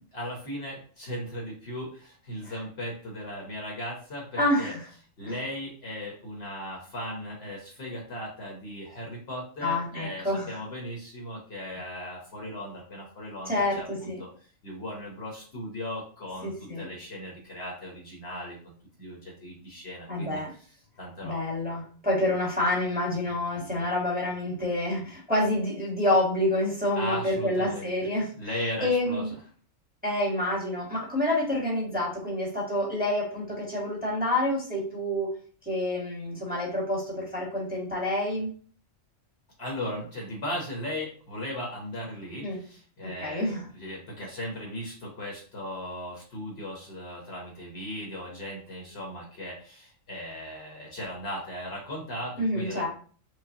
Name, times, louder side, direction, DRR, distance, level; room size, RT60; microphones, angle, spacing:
voice 1, 0.1-4.7 5.2-18.6 19.0-20.4 21.0-21.4 27.0-27.9 28.3-29.2 39.6-52.9, left 1 dB, 50° left, -2 dB, 1.2 m, -37 dB
voice 2, 4.4-4.9 5.2-5.3 9.6-10.6 13.5-14.2 16.4-16.9 20.1-20.5 21.2-28.3 28.8-29.3 30.0-35.3 35.6-38.5 42.4-42.6 43.0-43.6 52.4-52.9, left 1 dB, 5° right, -4 dB, 1.1 m, -28 dB
4.9 x 2.2 x 2.7 m, 0.43 s
omnidirectional pair, 1.4 m